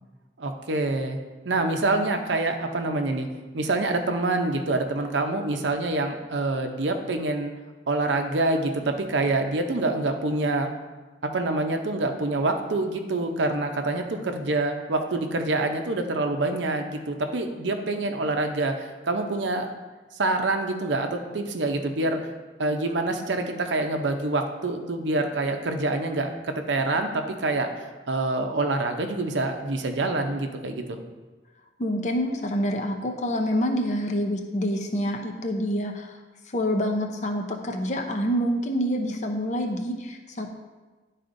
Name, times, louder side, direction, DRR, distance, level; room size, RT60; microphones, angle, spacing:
voice 1, 0.4-1.2 1.4-3.3 3.5-7.5 7.9-10.7 11.2-19.8 20.1-22.2 22.6-31.0, right 2 dB, 80° right, 5 dB, 0.7 m, -26 dB
voice 2, 31.8-36.2 36.5-40.5, equal, 40° left, 3 dB, 0.6 m, -27 dB
11.0 x 4.1 x 2.6 m, 1.3 s
head